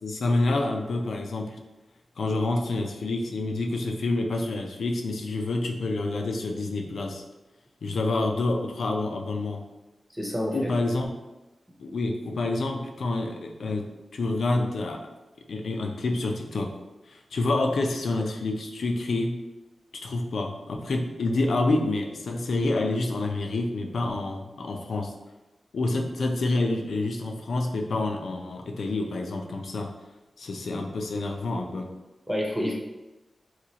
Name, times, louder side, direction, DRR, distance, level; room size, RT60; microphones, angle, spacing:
voice 1, 0.0-1.6 2.2-7.2 7.8-9.6 10.5-11.1 11.8-15.0 15.5-16.7 17.1-19.4 20.0-25.1 25.7-29.9 30.4-31.9, left 2 dB, 75° left, 3 dB, 0.4 m, -28 dB
voice 2, 10.1-10.7 32.3-32.7, equal, 5° left, -2 dB, 0.6 m, -28 dB
3.0 x 2.3 x 3.8 m, 1.1 s
wide cardioid pair, 125°, 0 cm